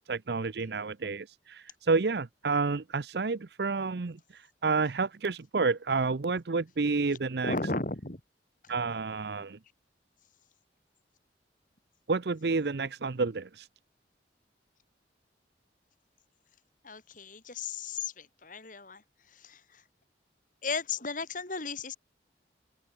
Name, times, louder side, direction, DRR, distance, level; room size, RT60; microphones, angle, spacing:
voice 1, 0.1-4.2 4.6-7.5 8.7-9.6 12.1-13.6, right 4 dB, 65° right, 0.7 m, -29 dB
voice 2, 7.4-8.2 8.6-8.8 16.8-19.0 19.3-19.8 20.6-22.0, left 4 dB, 50° left, 3.1 m, -35 dB
open air
head